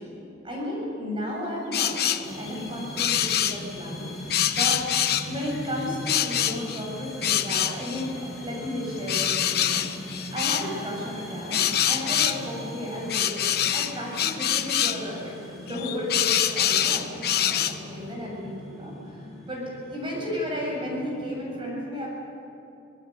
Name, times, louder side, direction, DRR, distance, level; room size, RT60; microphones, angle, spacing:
voice 1, 0.0-22.1, left 1 dB, 25° right, -2 dB, 7.7 m, -34 dB
sound 1, 1.7-2.3 3.0-3.6 4.3-5.5 6.1-6.8 7.2-8.0 9.1-10.7 11.5-12.4 13.1-15.0 15.7-17.8, left 10 dB, 55° left, 1.0 m, -25 dB
sound 2, 2.2-21.5, left 1 dB, ahead, 5.7 m, -40 dB
27.0 x 18.5 x 8.5 m, 2.9 s
head